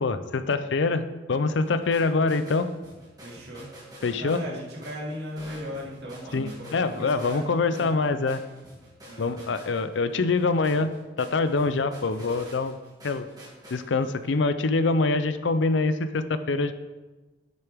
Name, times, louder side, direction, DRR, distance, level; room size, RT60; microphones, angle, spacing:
voice 1, 0.0-2.7 4.0-4.4 6.3-8.4 9.2-10.9 11.2-12.8 13.0-13.3 13.7-16.7, left 3 dB, 75° left, 11 dB, 0.5 m, -25 dB
sound 1, 1.5-14.3, right 1 dB, 20° right, 2.2 m, -48 dB
voice 2, 3.2-3.7 4.2-8.1 9.1-9.4, equal, 60° right, -3 dB, 2.1 m, -37 dB
10.5 x 6.7 x 3.5 m, 1.2 s
head